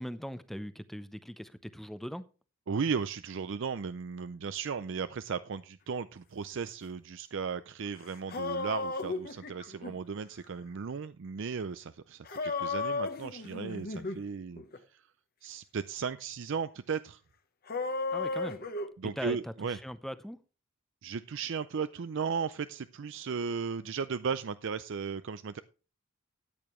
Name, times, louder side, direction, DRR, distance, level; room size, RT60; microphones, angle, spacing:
voice 1, 0.0-2.3 18.1-18.6 19.0-20.4, equal, ahead, 0.6 m, -40 dB
voice 2, 2.7-14.6 14.9-15.0 15.4-17.2 19.0-19.8 21.0-25.6, right 5 dB, 55° right, 0.4 m, -36 dB
sound 1, 7.9-9.9 12.2-14.2 14.6-14.8 17.7-18.9, left 3 dB, 45° left, 1.0 m, -34 dB
13.5 x 8.9 x 3.1 m
head